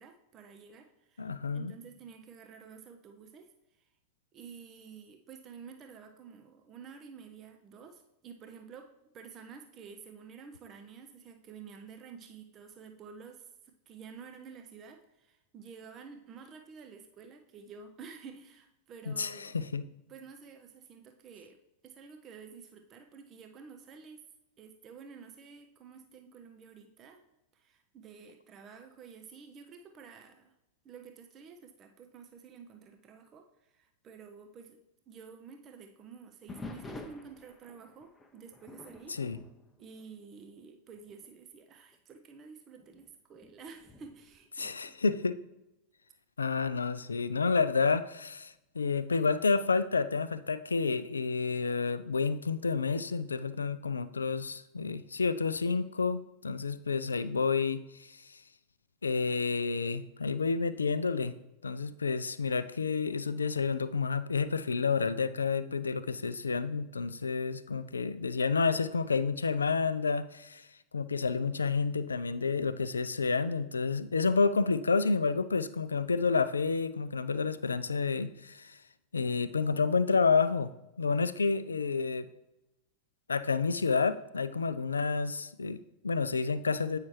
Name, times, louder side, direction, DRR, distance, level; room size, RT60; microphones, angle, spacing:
voice 1, 0.0-3.9 4.3-19.5 20.1-21.6 21.8-24.2 24.6-27.2 27.5-30.5 30.8-34.8 35.1-39.2 39.8-44.9, right 6 dB, 30° right, 6 dB, 0.5 m, -50 dB
voice 2, 1.2-1.7 19.1-19.9 39.1-39.4 44.6-45.4 46.4-58.4 59.0-61.3 61.6-70.7 70.9-78.8 79.1-80.7 81.0-82.3 83.3-87.0, left 4 dB, 75° left, 13 dB, 0.3 m, -30 dB
sound 1, 36.5-40.6 41.0-41.3 41.9-42.0 42.8-45.5 47.3-47.8, left 3 dB, 10° left, 0.6 m, -49 dB
8.4 x 5.6 x 3.1 m, 0.91 s
figure-of-eight pair, 90°, 0 cm